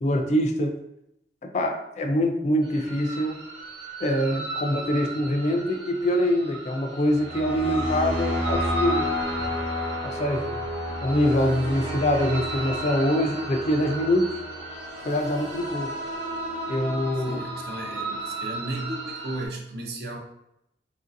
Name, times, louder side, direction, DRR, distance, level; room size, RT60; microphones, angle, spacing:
voice 1, 0.0-0.8 1.5-3.4 4.0-9.1 9.4-9.5 10.0-10.6 11.0-14.4 15.0-15.9 16.7-17.4, equal, 40° left, 3 dB, 0.3 m, -24 dB
sound 1, 2.6-19.5, equal, 85° right, 0.9 m, -32 dB
voice 2, 17.3-20.2, right 1 dB, 60° right, 1 dB, 0.6 m, -34 dB
3.1 x 2.6 x 2.5 m, 0.81 s
head